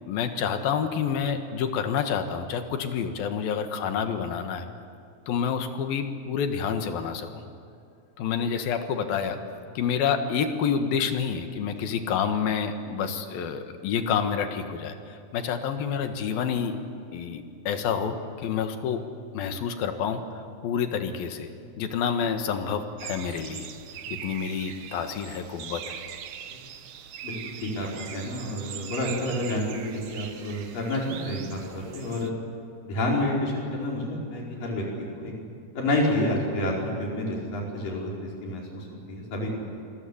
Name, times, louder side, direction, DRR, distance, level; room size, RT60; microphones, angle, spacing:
voice 1, 0.1-4.7 5.3-7.4 8.2-9.4 9.7-16.8 17.1-19.0 19.3-21.5 21.8-23.7 24.1-26.0, left 7 dB, 85° left, 7 dB, 3.4 m, -28 dB
sound 1, 23.0-32.3, right 9 dB, 65° right, 2.5 m, -41 dB
voice 2, 27.2-32.3 32.8-35.3 35.7-39.5, left 1 dB, 70° left, -2 dB, 6.7 m, -29 dB
27.5 x 22.0 x 8.6 m, 2.4 s
omnidirectional pair, 4.1 m